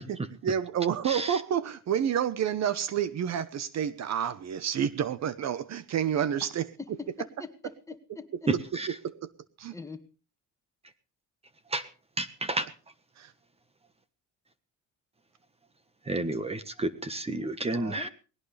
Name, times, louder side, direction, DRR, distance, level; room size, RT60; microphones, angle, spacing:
voice 1, 0.0-7.0 8.3-8.6 8.9-9.3 9.6-9.7 13.2-13.3 17.7-18.1, right 9 dB, 55° right, 15 dB, 1.1 m, -30 dB
voice 2, 1.1-1.4 8.5-8.9 11.7-11.9 12.2-12.7 16.1-18.1, right 2 dB, 20° right, 12 dB, 1.4 m, -31 dB
voice 3, 7.2-8.5 9.7-10.0 17.9-18.1, left 4 dB, 10° left, 6 dB, 1.9 m, -43 dB
20.0 x 17.5 x 3.4 m, 0.36 s
cardioid pair, 140°, 32 cm